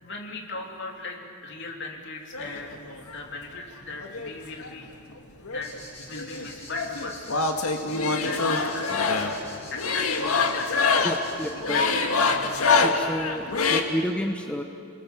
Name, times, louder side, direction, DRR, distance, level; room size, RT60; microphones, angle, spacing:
voice 1, 0.0-2.8 3.1-4.9 5.4-5.7 6.1-7.3 8.1-11.1 11.5-11.9 12.3-12.6, left 3 dB, 55° left, 1 dB, 3.3 m, -38 dB
sound 1, 2.3-3.2 4.0-5.2 5.4-13.8, left 4 dB, 85° left, 1.9 m, -25 dB
sound 2, 5.6-11.5, left 3 dB, 30° left, 5.9 m, -45 dB
voice 2, 11.0-12.0 12.8-14.6, equal, 5° left, 2 dB, 1.1 m, -30 dB
30.0 x 20.5 x 7.4 m, 2.4 s
head